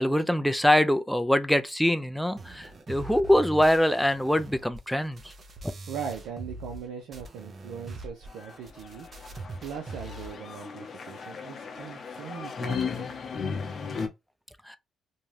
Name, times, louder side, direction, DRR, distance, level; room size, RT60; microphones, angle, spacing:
voice 1, 0.0-5.3 5.6-5.7 14.7-14.8, equal, ahead, 0.3 m, -24 dB
sound 1, 2.4-6.8 7.1-10.4, right 2 dB, 40° right, 0.6 m, -42 dB
voice 2, 5.9-9.1 9.6-13.1, right 7 dB, 90° right, 0.5 m, -40 dB
sound 2, 8.4-14.1, left 5 dB, 50° left, 0.7 m, -36 dB
2.6 x 2.3 x 3.2 m
cardioid pair, 90°, 0 cm